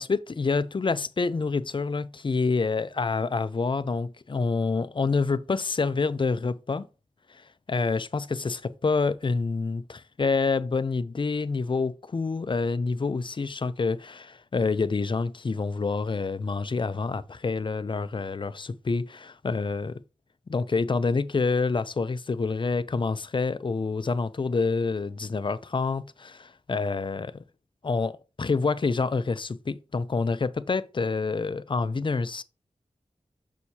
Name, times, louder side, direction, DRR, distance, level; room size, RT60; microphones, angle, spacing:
voice 1, 0.0-6.9 7.3-20.0 20.5-27.4 27.8-32.4, left 4 dB, 40° left, 0.5 m, -27 dB
6.3 x 5.6 x 2.8 m
cardioid pair, 50°, 12 cm